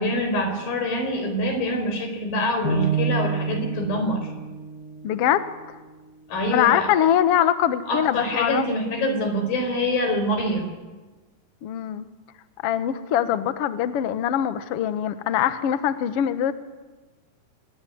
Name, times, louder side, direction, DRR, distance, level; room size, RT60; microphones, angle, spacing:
voice 1, 0.0-4.3 6.3-6.9 7.9-10.7, left 1 dB, 60° left, 6 dB, 6.5 m, -25 dB
sound 1, 2.6-6.8, right 5 dB, 25° left, 5.8 m, -29 dB
voice 2, 5.0-5.5 6.5-8.7 11.6-12.1 12.6-16.5, left 10 dB, 90° left, 11 dB, 1.3 m, -22 dB
27.0 x 22.0 x 9.5 m, 1.2 s
omnidirectional pair, 4.7 m